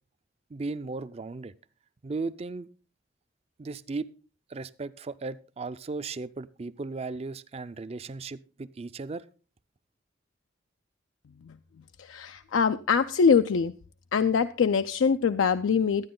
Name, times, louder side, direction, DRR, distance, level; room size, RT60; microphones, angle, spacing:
voice 1, 0.5-1.5 2.0-2.7 3.6-4.1 4.5-9.2, right 3 dB, 30° right, 16 dB, 0.4 m, -36 dB
voice 2, 12.0-13.7 14.1-16.1, left 6 dB, 85° left, 9 dB, 0.4 m, -23 dB
12.5 x 9.4 x 3.8 m, 0.35 s
head